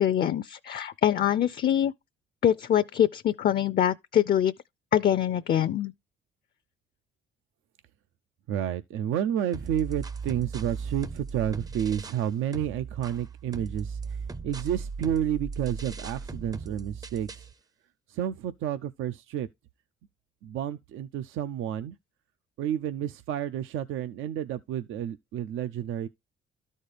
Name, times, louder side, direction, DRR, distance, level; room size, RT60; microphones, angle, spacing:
voice 1, 0.0-1.9 2.4-4.5 4.9-5.9, left 10 dB, 50° left, 0.5 m, -24 dB
voice 2, 8.5-14.2 14.4-17.5 18.1-19.5 20.4-22.0 22.6-26.1, right 10 dB, 85° right, 0.5 m, -30 dB
sound 1, 9.5-12.3 12.5-17.5, right 5 dB, 20° right, 0.5 m, -38 dB
12.5 x 4.3 x 3.2 m
cardioid pair, 90°, 20 cm